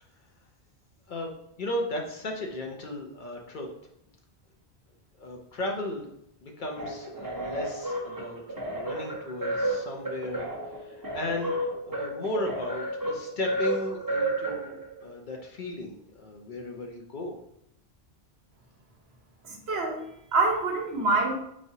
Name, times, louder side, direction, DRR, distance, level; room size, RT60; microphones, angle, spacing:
voice 1, 1.1-3.7 5.1-6.1 6.4-11.6 11.9-17.4, left 2 dB, 55° left, 1 dB, 0.7 m, -35 dB
sound 1, 6.8-15.0, right 1 dB, 20° right, 0.8 m, -32 dB
voice 2, 19.4-21.3, right 3 dB, 70° right, 1 dB, 1.1 m, -26 dB
4.8 x 3.1 x 2.7 m, 0.77 s
omnidirectional pair, 1.1 m